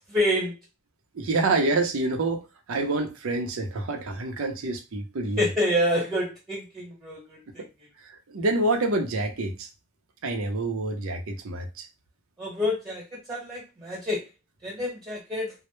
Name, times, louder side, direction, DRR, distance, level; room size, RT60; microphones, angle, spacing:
voice 1, 0.1-0.6 5.4-7.6 12.4-14.2 14.6-15.5, left 1 dB, 20° right, 1.0 m, -27 dB
voice 2, 1.1-2.4 2.7-5.5 7.6-7.7 8.0-9.7 10.2-11.9, right 2 dB, 85° right, 0.6 m, -27 dB
2.1 x 2.0 x 2.9 m
head